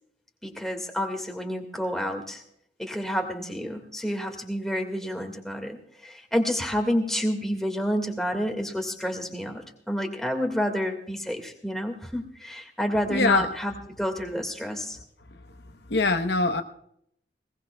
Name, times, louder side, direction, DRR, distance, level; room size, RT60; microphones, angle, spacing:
voice 1, 0.4-2.4 2.8-13.7 14.0-15.0, equal, ahead, 3 dB, 1.9 m, -29 dB
voice 2, 13.1-13.5 15.9-16.6, left 3 dB, 60° left, 6 dB, 0.9 m, -23 dB
20.5 x 19.0 x 2.3 m, 0.69 s
head